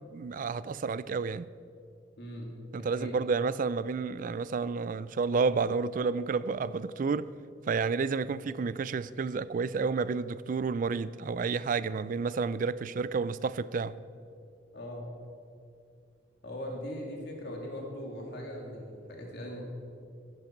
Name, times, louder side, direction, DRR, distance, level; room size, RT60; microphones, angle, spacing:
voice 1, 0.1-1.5 2.7-7.3 7.7-14.0, right 4 dB, 45° right, 0.3 m, -30 dB
voice 2, 2.2-3.2 14.7-15.1 16.4-19.6, equal, 60° left, 2.5 m, -40 dB
15.5 x 11.0 x 4.5 m
head